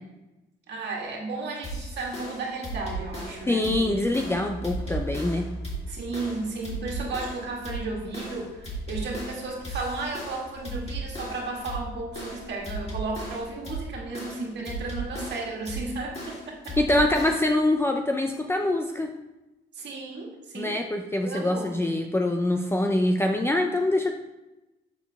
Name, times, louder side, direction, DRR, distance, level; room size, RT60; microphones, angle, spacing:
voice 1, 0.7-3.7 5.9-16.8 19.7-20.7 21.2-21.8, right 3 dB, 60° right, -1 dB, 1.8 m, -34 dB
sound 1, 1.6-17.6, right 1 dB, 30° left, 2.1 m, -36 dB
Truck, 3.3-14.0, right 1 dB, 5° right, 1.2 m, -43 dB
voice 2, 3.5-5.5 16.8-19.1 20.5-24.1, left 1 dB, 10° left, 3 dB, 0.4 m, -24 dB
7.1 x 4.5 x 3.4 m, 1.0 s
cardioid pair, 90°, 20 cm